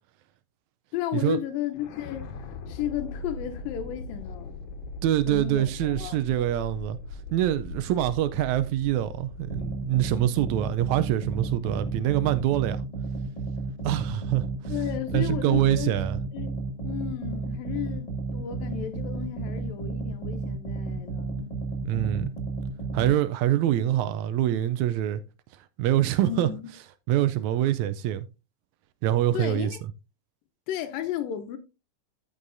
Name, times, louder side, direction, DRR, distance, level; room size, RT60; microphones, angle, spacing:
voice 1, 0.9-4.5 5.3-6.4 14.7-16.0 16.3-21.5 26.3-26.7 29.3-29.8 30.7-31.6, left 11 dB, 90° left, 2.6 m, -34 dB
sound 1, 1.7-12.8, left 3 dB, 70° left, 2.7 m, -41 dB
voice 2, 5.0-7.0 7.3-12.8 13.8-14.7 15.1-16.2 21.9-22.3 22.9-25.2 25.8-26.5 27.1-28.3 29.0-29.7, right 13 dB, 90° right, 1.6 m, -25 dB
sound 2, 9.5-23.1, right 3 dB, 15° left, 1.7 m, -33 dB
14.0 x 6.4 x 2.6 m
omnidirectional pair, 3.9 m